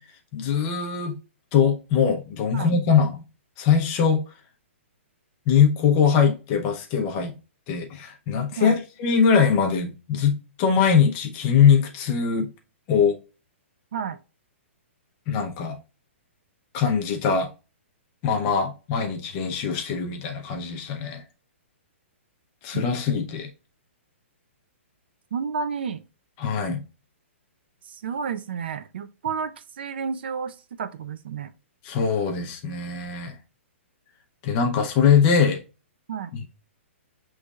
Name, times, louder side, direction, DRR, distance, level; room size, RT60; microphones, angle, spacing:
voice 1, 0.3-1.2 1.5-3.2 3.6-4.2 5.5-7.3 7.7-12.5 12.9-13.2 15.3-15.8 16.7-17.5 18.2-21.2 22.6-23.5 26.4-26.8 31.8-33.4 34.4-35.6 36.3-36.5, left 6 dB, 20° left, 0.6 m, -22 dB
voice 2, 25.3-26.0 27.8-31.5 36.1-36.3, right 6 dB, 50° right, 0.4 m, -31 dB
6.4 x 3.1 x 2.3 m
hypercardioid pair, 175°, 7 cm